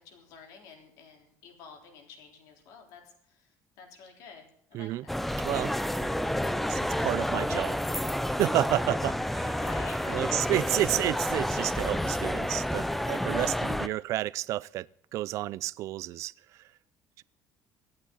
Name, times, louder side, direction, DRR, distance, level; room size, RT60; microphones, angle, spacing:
voice 1, 0.0-5.2 9.5-10.9 13.9-14.1, left 5 dB, 80° left, 3 dB, 3.8 m, -49 dB
voice 2, 4.7-5.0 5.4-5.7 6.0-6.2 6.7-7.8 8.4-9.6 10.1-14.9 15.1-16.3 17.2-17.3, right 15 dB, 60° right, 20 dB, 0.4 m, -30 dB
sound 1, 5.1-13.9, left 1 dB, ahead, 0.4 m, -30 dB
24.5 x 8.9 x 3.9 m, 0.67 s
cardioid pair, 160°, 6 cm